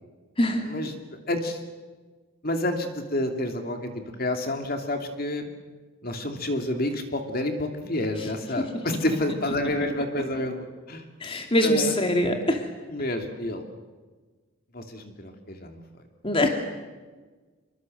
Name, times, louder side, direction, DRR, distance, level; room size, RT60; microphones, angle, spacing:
voice 1, 0.7-1.6 2.4-5.4 6.0-11.0 11.6-11.9 12.9-13.6 14.7-15.8 16.4-16.5, left 1 dB, 45° left, 4 dB, 2.8 m, -29 dB
voice 2, 11.2-12.7 16.2-16.5, left 1 dB, 25° left, 3 dB, 2.6 m, -23 dB
27.0 x 23.5 x 7.9 m, 1.3 s
head